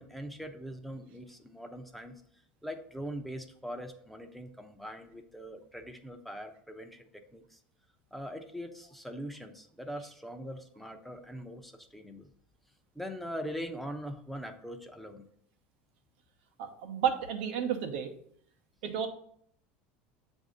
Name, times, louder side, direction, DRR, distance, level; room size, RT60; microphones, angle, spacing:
voice 1, 0.0-2.2 2.6-7.6 8.1-12.3 13.0-15.3, equal, ahead, 5 dB, 0.7 m, -42 dB
voice 2, 16.6-18.1 18.8-19.1, right 8 dB, 80° right, 5 dB, 0.8 m, -31 dB
7.2 x 2.7 x 5.0 m, 0.65 s
supercardioid pair, 100°, 6 cm